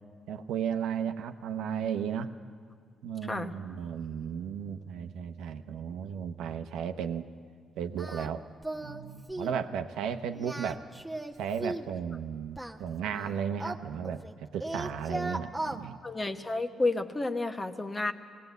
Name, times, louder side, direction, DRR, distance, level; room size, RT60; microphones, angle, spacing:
voice 1, 0.3-2.3 3.0-7.3 7.8-8.4 8.8-10.8 11.4-16.0, right 8 dB, 85° right, 8 dB, 0.8 m, -34 dB
Singing, 8.0-8.3 8.6-9.0 9.3-9.6 10.3-11.9 12.6-14.3 14.6-15.8, right 1 dB, 5° right, 1.1 m, -37 dB
voice 2, 16.0-18.1, left 2 dB, 20° left, 8 dB, 1.1 m, -31 dB
18.0 x 18.0 x 8.1 m, 2.2 s
cardioid pair, 90°, 0 cm